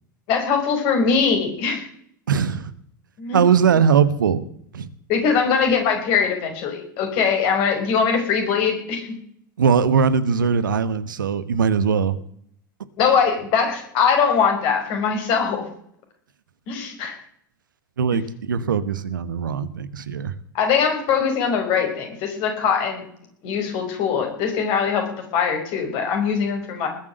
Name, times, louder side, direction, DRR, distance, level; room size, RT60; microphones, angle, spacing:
voice 1, 0.3-1.9 3.2-3.5 5.1-9.1 13.0-15.7 16.7-17.2 20.5-23.0 23.4-26.9, left 6 dB, 50° left, 4 dB, 5.4 m, -21 dB
voice 2, 2.3-2.7 3.3-4.4 4.7-4.9 9.6-12.2 18.0-20.3, right 6 dB, 75° right, 14 dB, 1.1 m, -20 dB
20.0 x 7.4 x 7.8 m, 0.66 s
figure-of-eight pair, 85°, 11 cm